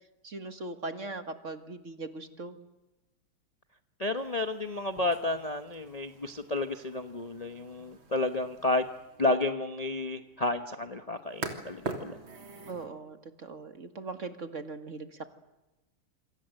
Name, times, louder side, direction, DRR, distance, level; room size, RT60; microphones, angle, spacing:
voice 1, 0.2-2.6 12.7-15.4, right 3 dB, 40° right, 8 dB, 1.9 m, -40 dB
voice 2, 4.0-8.8 9.2-12.2, left 2 dB, 25° left, 7 dB, 0.8 m, -31 dB
sound 1, 4.2-12.9, right 3 dB, 75° right, 4.0 m, -45 dB
28.0 x 25.0 x 7.8 m, 1.0 s
omnidirectional pair, 2.2 m